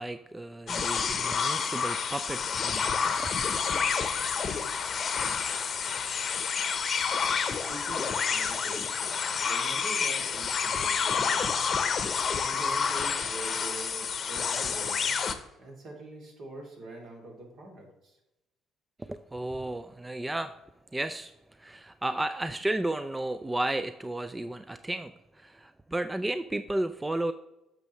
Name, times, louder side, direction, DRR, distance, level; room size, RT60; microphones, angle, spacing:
voice 1, 0.0-3.3 19.0-20.6 20.9-21.3 21.6-27.3, right 1 dB, 15° right, 11 dB, 0.4 m, -33 dB
sound 1, 0.7-15.3, left 6 dB, 45° left, 0.8 m, -29 dB
voice 2, 7.5-11.9 12.4-15.2 15.6-18.2, right 2 dB, 60° right, 0 dB, 2.7 m, -44 dB
8.9 x 6.3 x 3.1 m, 0.92 s
cardioid pair, 85°, 0 cm